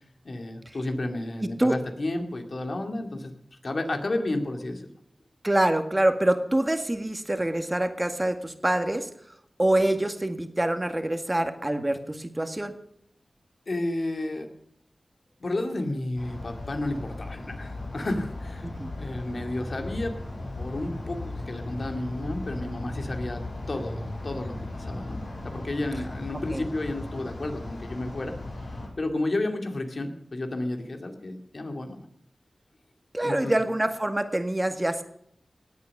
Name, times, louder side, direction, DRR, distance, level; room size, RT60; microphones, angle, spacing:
voice 1, 0.2-3.3 3.6-4.9 13.7-14.5 15.4-20.1 20.6-32.1 33.2-33.6, left 2 dB, 60° left, 4 dB, 2.5 m, -32 dB
voice 2, 5.4-9.1 9.6-12.7 18.8-18.9 26.5-26.7 33.1-35.0, right 1 dB, 25° right, 7 dB, 1.9 m, -25 dB
sound 1, 16.2-28.9, left 2 dB, 85° left, 8.0 m, -37 dB
18.5 x 8.5 x 6.7 m, 0.71 s
cardioid pair, 45°, 0 cm